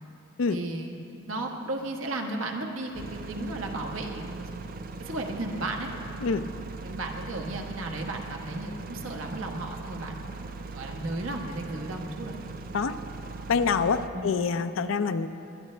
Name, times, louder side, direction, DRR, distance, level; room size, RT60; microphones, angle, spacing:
voice 1, 0.5-1.0 1.3-4.5 5.0-5.9 6.8-10.5 10.7-12.3 14.1-14.3, right 2 dB, 85° right, 2 dB, 1.3 m, -34 dB
sound 1, 2.9-14.1, right 3 dB, 45° right, 0.4 m, -40 dB
voice 2, 13.5-15.3, left 5 dB, 80° left, 10 dB, 0.5 m, -26 dB
19.5 x 12.5 x 3.3 m, 2.8 s
head